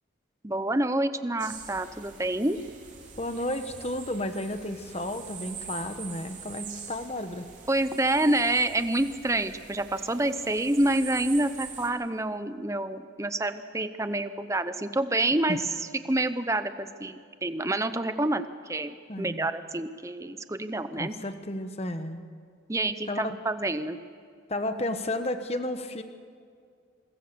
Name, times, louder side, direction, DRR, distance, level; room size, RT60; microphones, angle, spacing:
voice 1, 0.4-2.6 7.7-15.6 15.9-21.2 22.7-24.0, right 1 dB, 15° right, 11 dB, 0.7 m, -28 dB
sound 1, 1.4-11.9, right 6 dB, 40° right, 3.8 m, -44 dB
voice 2, 3.2-7.5 15.5-15.6 19.1-19.5 21.0-22.2 23.1-23.4 24.5-26.0, left 1 dB, 30° left, 8 dB, 1.2 m, -32 dB
27.5 x 21.5 x 6.9 m, 2.2 s
head